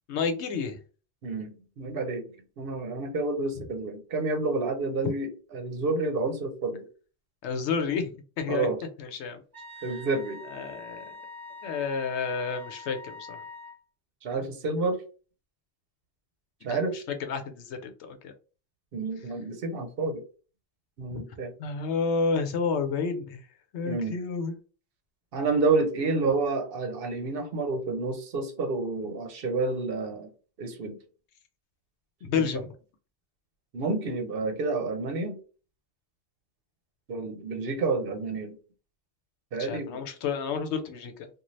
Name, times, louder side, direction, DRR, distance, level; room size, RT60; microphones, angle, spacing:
voice 1, 0.1-0.8 7.4-8.7 9.0-9.4 10.5-11.1 11.6-13.4 16.7-18.3 21.1-21.2 21.6-23.5 23.7-24.5 32.2-32.7 39.6-41.3, left 5 dB, 90° left, 7 dB, 0.9 m, -30 dB
voice 2, 1.2-2.3 2.6-6.9 8.5-8.8 9.8-10.4 14.2-15.0 16.6-16.9 18.9-20.2 21.0-21.5 23.8-24.2 25.3-30.3 30.6-31.0 32.3-32.4 33.7-35.4 37.1-38.6 39.5-40.0, right 3 dB, 60° right, 5 dB, 0.8 m, -29 dB
Wind instrument woodwind instrument, 9.5-13.8, left 3 dB, 20° right, 1.0 m, -44 dB
2.6 x 2.3 x 3.1 m, 0.37 s
omnidirectional pair, 1.1 m